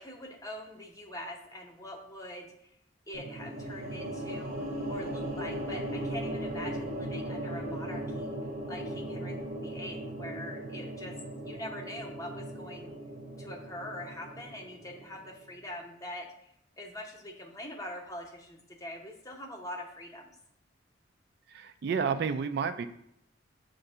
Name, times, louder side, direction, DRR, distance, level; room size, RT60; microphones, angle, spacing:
voice 1, 0.0-2.5 3.1-4.6 4.9-8.3 8.7-11.2 11.5-12.9 13.4-20.3, left 1 dB, 20° left, 2 dB, 0.7 m, -43 dB
sound 1, 3.1-15.4, right 1 dB, 40° right, 0.8 m, -38 dB
voice 2, 21.5-22.9, right 6 dB, 60° right, 9 dB, 0.3 m, -30 dB
6.8 x 2.6 x 5.3 m, 0.74 s
head